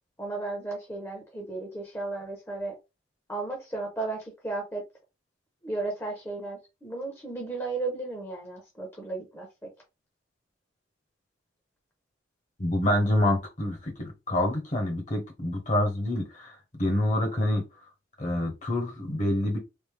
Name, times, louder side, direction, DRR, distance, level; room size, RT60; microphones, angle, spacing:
voice 1, 0.2-2.7 3.3-4.8 5.6-9.5, right 3 dB, 10° left, 0.8 m, -34 dB
voice 2, 12.6-17.6 18.2-19.6, left 1 dB, 35° left, 1.0 m, -27 dB
3.4 x 2.6 x 3.2 m
head